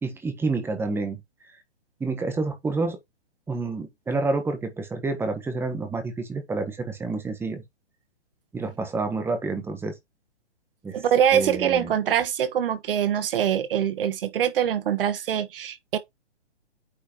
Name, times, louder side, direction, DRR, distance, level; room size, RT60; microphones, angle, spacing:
voice 1, 0.0-1.2 2.0-3.0 3.5-7.6 8.5-10.0 10.8-11.0 11.3-11.9, right 3 dB, 5° right, 1.3 m, -28 dB
voice 2, 10.9-16.0, right 9 dB, 55° right, 1.3 m, -24 dB
8.9 x 4.7 x 3.0 m
hypercardioid pair, 135°, 34 cm